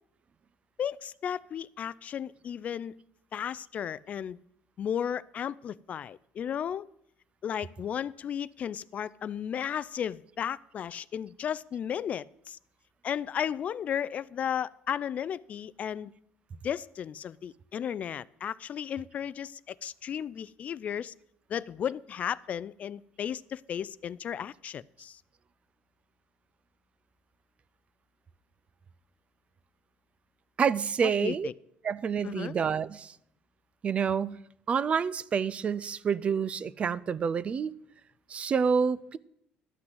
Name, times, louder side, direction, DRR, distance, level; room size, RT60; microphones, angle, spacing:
voice 1, 0.8-2.9 3.3-4.4 4.8-6.9 7.4-12.6 13.0-16.1 16.6-21.1 21.5-25.2 31.0-31.5 32.2-32.5, left 9 dB, 40° left, 0.3 m, -34 dB
voice 2, 30.6-31.5 31.8-33.1 33.8-34.4 34.7-37.7 38.3-39.2, right 6 dB, 35° right, 0.4 m, -28 dB
12.0 x 6.0 x 7.9 m
cardioid pair, 130°, 4 cm